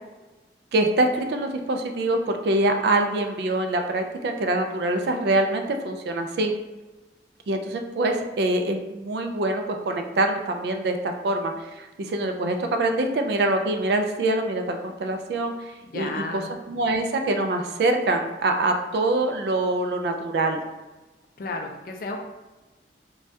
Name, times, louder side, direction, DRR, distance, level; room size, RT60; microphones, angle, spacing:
voice 1, 0.7-6.5 7.5-20.6, right 2 dB, 65° right, 5 dB, 0.3 m, -25 dB
voice 2, 15.8-16.5 21.4-22.2, left 3 dB, 50° left, 3 dB, 0.3 m, -32 dB
3.2 x 2.2 x 2.7 m, 1.1 s
head